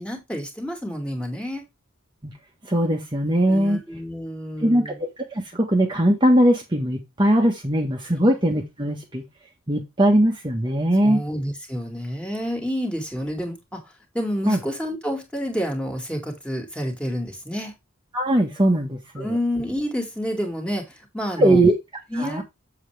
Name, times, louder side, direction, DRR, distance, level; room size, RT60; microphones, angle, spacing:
voice 1, 0.0-1.6 3.5-5.0 8.1-8.2 11.0-13.8 14.1-17.7 19.2-21.6 22.1-22.4, equal, 5° left, 2.3 m, -29 dB
voice 2, 2.7-3.8 4.6-4.9 5.5-9.2 9.7-11.2 14.5-14.6 18.1-19.3 21.4-21.7 22.1-22.4, right 1 dB, 20° right, 1.4 m, -20 dB
7.4 x 7.3 x 3.4 m
head